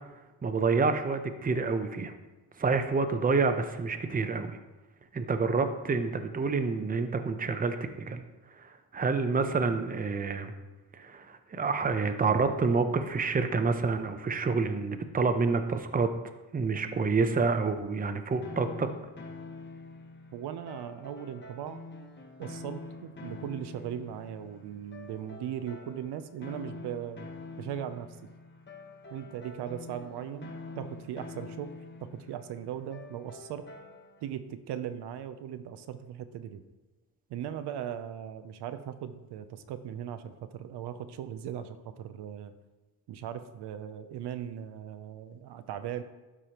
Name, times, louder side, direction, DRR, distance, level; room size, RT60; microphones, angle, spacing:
voice 1, 0.4-2.1 2.6-4.6 5.1-7.8 8.1-8.2 8.6-10.5 10.9-16.1 16.5-18.9, right 4 dB, 20° right, 8 dB, 0.7 m, -28 dB
sound 1, 18.4-34.3, left 3 dB, 25° left, 0.9 m, -46 dB
voice 2, 20.3-21.8 22.4-27.3 27.6-28.2 29.1-31.7 32.0-33.7 34.2-36.6 37.3-42.5 43.1-46.0, right 9 dB, 75° right, 10 dB, 0.6 m, -38 dB
12.0 x 4.9 x 3.0 m, 1.1 s
cardioid pair, 90°, 41 cm